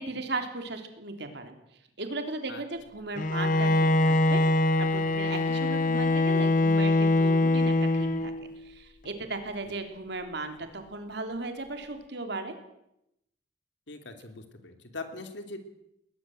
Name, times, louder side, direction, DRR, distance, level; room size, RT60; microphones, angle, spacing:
voice 1, 0.0-1.5 2.0-4.4 4.9-8.3 8.6-12.5, right 3 dB, 65° right, 6 dB, 3.3 m, -36 dB
Bowed string instrument, 3.2-8.5, left 2 dB, 45° left, 1.0 m, -23 dB
voice 2, 13.9-15.6, left 3 dB, 75° left, 7 dB, 3.0 m, -41 dB
20.5 x 19.5 x 7.9 m, 0.83 s
head